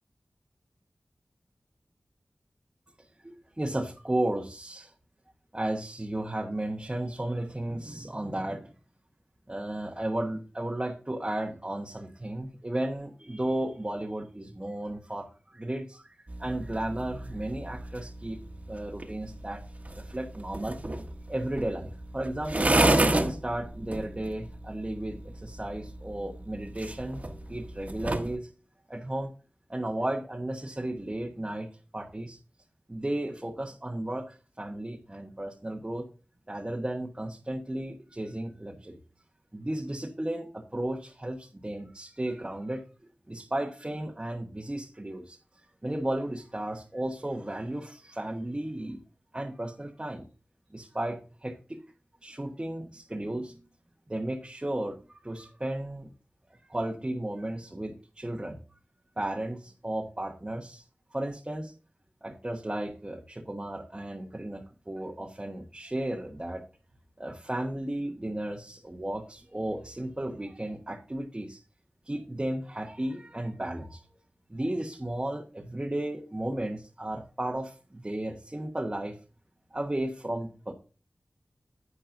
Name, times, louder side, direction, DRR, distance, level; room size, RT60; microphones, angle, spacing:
voice 1, 3.2-4.9 5.5-8.7 9.5-18.4 18.7-19.6 19.9-20.8 21.3-27.2 27.5-28.5 28.9-29.3 29.7-32.4 32.9-36.1 36.5-39.0 39.5-42.8 43.3-45.4 45.8-49.0 49.3-50.3 50.7-51.8 52.2-53.6 54.1-56.1 56.5-58.6 59.2-60.8 61.1-61.7 62.2-66.7 67.2-71.6 72.0-74.0 74.5-79.2 79.7-80.7, right 1 dB, 25° right, 1 dB, 1.2 m, -34 dB
sound 1, 16.3-28.4, right 1 dB, 40° right, 1.3 m, -32 dB
10.5 x 8.4 x 2.6 m, 0.36 s
cardioid pair, 45°, 4 cm